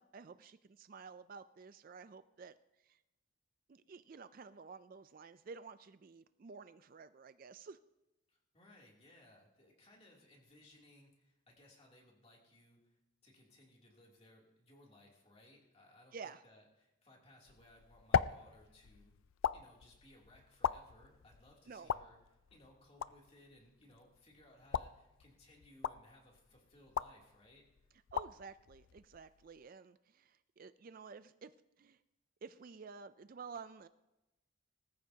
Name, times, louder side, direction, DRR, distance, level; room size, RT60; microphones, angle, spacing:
voice 1, 0.0-2.5 2.8-3.0 3.7-7.8 16.1-16.4 21.7-21.9 28.1-31.5 31.8-32.0 32.4-33.9, right 5 dB, 40° right, 13 dB, 0.4 m, -52 dB
voice 2, 8.3-19.1 19.5-27.6, left 1 dB, 30° left, -2 dB, 2.9 m, -63 dB
sound 1, 17.5-29.6, left 7 dB, 75° left, 0.4 m, -41 dB
19.5 x 14.5 x 2.8 m, 0.95 s
head